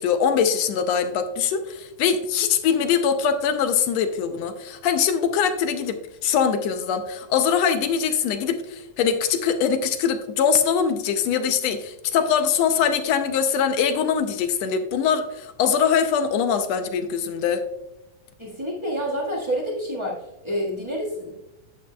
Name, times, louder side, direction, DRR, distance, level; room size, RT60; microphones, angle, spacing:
voice 1, 0.0-17.6, left 7 dB, 75° left, 8 dB, 1.7 m, -22 dB
voice 2, 18.4-20.2 20.4-21.3, equal, 20° right, -5 dB, 0.8 m, -28 dB
11.0 x 8.4 x 2.2 m, 0.94 s
omnidirectional pair, 3.4 m